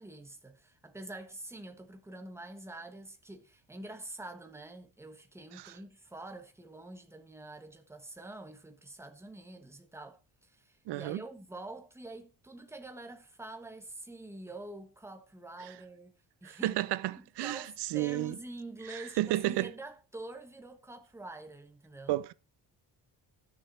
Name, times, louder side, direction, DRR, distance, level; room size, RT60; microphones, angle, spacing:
voice 1, 0.0-16.8 17.1-22.2, right 2 dB, 5° right, 1.4 m, -46 dB
voice 2, 10.9-11.2 15.6-15.7 16.4-18.3 18.9-19.7 22.1-22.3, right 16 dB, 80° right, 0.7 m, -32 dB
12.5 x 7.2 x 4.5 m
cardioid pair, 160°, 41 cm